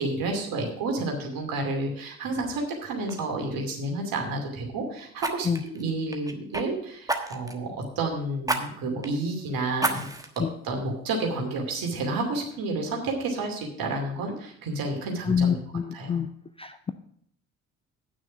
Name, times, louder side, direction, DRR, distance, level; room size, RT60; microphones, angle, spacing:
voice 1, 0.0-7.7 8.0-10.1 10.4-15.6 15.9-16.2, right 2 dB, 50° right, 1 dB, 2.7 m, -30 dB
Fire, 2.5-2.7 3.1-3.3 5.2-6.6 7.1-7.6 8.4-8.6 9.0-9.1 9.8-10.4 10.9-11.0, right 2 dB, 10° right, 1.2 m, -30 dB
voice 2, 15.3-16.3 16.6-16.9, left 7 dB, 15° left, 9 dB, 0.4 m, -26 dB
9.3 x 6.2 x 7.0 m, 0.66 s
figure-of-eight pair, 50°, 42 cm